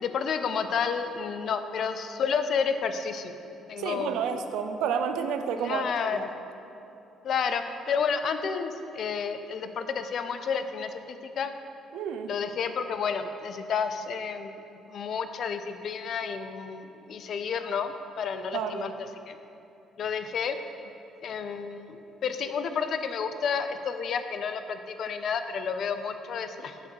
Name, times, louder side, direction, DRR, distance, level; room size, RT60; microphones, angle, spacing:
voice 1, 0.0-3.3 3.7-4.3 5.6-6.2 7.2-11.5 12.3-14.5 14.9-18.9 19.3-19.4 20.0-20.6 21.2-26.7, left 6 dB, 60° left, 9 dB, 0.5 m, -30 dB
voice 2, 3.8-5.9 6.1-6.3 11.9-12.3 18.5-18.9, right 7 dB, 75° right, 8 dB, 0.4 m, -30 dB
7.9 x 3.6 x 6.2 m, 2.9 s
hypercardioid pair, 55°, 0 cm